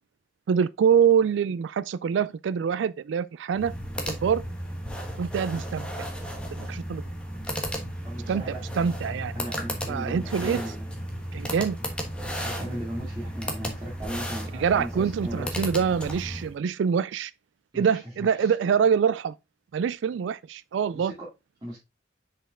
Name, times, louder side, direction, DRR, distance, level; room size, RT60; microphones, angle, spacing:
voice 1, 0.5-3.7 4.1-4.4 5.2-6.1 6.6-7.0 8.3-9.3 9.9-10.6 11.3-11.8 14.6-17.3 17.7-19.3 19.7-21.1, right 7 dB, 80° right, 0.3 m, -25 dB
sound 1, 3.5-16.5, equal, 5° left, 1.2 m, -34 dB
voice 2, 8.0-8.6 9.3-10.9 12.3-15.5 17.7-18.5 20.9-21.1 21.6-21.8, right 1 dB, 20° right, 2.4 m, -37 dB
6.6 x 5.2 x 3.7 m
head